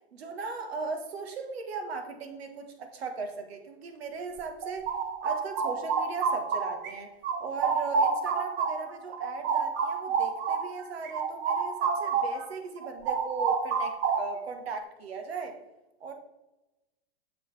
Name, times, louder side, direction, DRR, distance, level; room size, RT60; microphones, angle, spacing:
voice 1, 0.1-4.9 5.2-7.1 7.4-15.6 16.0-16.1, right 4 dB, 70° right, 6 dB, 1.4 m, -38 dB
sound 1, 4.4-6.9 7.2-12.5 12.8-14.5, right 5 dB, 35° right, 1.0 m, -29 dB
7.3 x 6.7 x 3.3 m, 1.0 s
hypercardioid pair, 105°, 32 cm